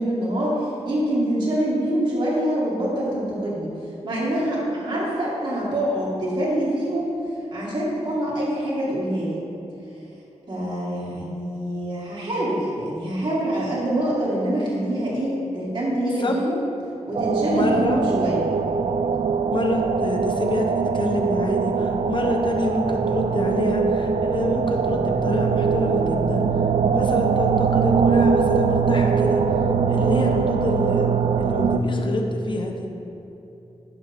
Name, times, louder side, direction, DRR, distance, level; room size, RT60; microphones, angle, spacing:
voice 1, 0.0-3.7 4.0-7.1 7.5-9.3 10.5-16.6 17.1-18.4, right 1 dB, 40° right, -8 dB, 2.0 m, -25 dB
sound 1, 17.1-31.8, right 6 dB, 65° right, 0.4 m, -22 dB
voice 2, 17.5-18.0 19.5-26.4 26.9-29.4 29.9-31.1 31.4-32.8, left 2 dB, 45° left, 2 dB, 0.9 m, -27 dB
11.0 x 6.0 x 3.5 m, 2.9 s
wide cardioid pair, 125°, 12 cm